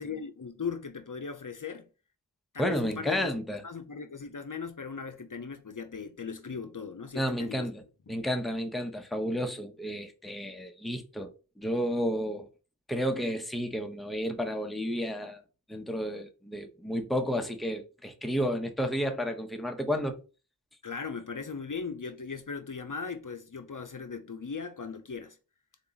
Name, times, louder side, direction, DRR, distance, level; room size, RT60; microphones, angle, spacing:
voice 1, 0.0-1.9 2.5-3.3 3.6-7.7 8.1-8.2 20.8-25.4, left 5 dB, 50° left, 0.6 m, -38 dB
voice 2, 2.6-3.6 7.1-11.3 11.6-12.5 12.9-15.4 15.7-20.2, equal, ahead, 0.7 m, -31 dB
3.9 x 2.9 x 3.9 m
wide cardioid pair, 40°, 40 cm